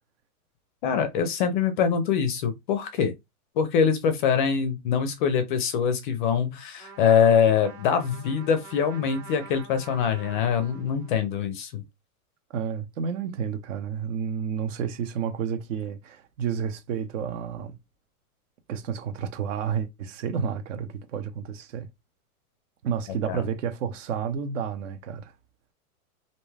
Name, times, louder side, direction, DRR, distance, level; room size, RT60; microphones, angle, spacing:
voice 1, 0.8-3.1 3.6-11.8 23.3-23.4, left 7 dB, 35° left, 0.5 m, -24 dB
Trumpet, 6.8-11.4, right 5 dB, 25° right, 0.9 m, -46 dB
voice 2, 12.5-17.8 18.7-21.9 22.8-25.3, right 7 dB, 55° right, 0.8 m, -30 dB
2.6 x 2.2 x 3.2 m
hypercardioid pair, 140°, 45 cm